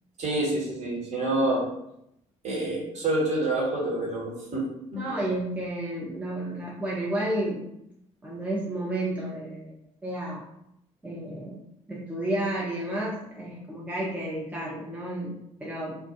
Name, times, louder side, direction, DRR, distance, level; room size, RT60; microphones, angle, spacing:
voice 1, 0.2-1.6 2.4-4.6 4.9-5.0, right 2 dB, 40° right, -4 dB, 1.1 m, -27 dB
voice 2, 5.0-7.6 8.2-9.7 10.0-10.4 11.0-11.6 11.9-16.0, right 1 dB, 10° right, -5 dB, 0.7 m, -31 dB
2.4 x 2.2 x 2.7 m, 0.78 s
figure-of-eight pair, 50°, 17 cm